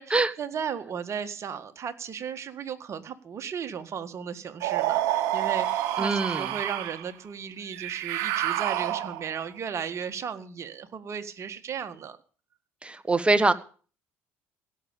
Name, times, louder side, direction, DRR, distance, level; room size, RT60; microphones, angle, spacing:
voice 1, 0.0-12.2, right 7 dB, 45° right, 9 dB, 1.8 m, -35 dB
sound 1, 4.6-7.1 7.7-9.4, right 13 dB, 70° right, 1.1 m, -28 dB
voice 2, 6.0-6.5 12.8-13.5, right 2 dB, 15° right, 12 dB, 1.6 m, -23 dB
17.0 x 6.8 x 8.8 m, 0.40 s
hypercardioid pair, 60°, 7 cm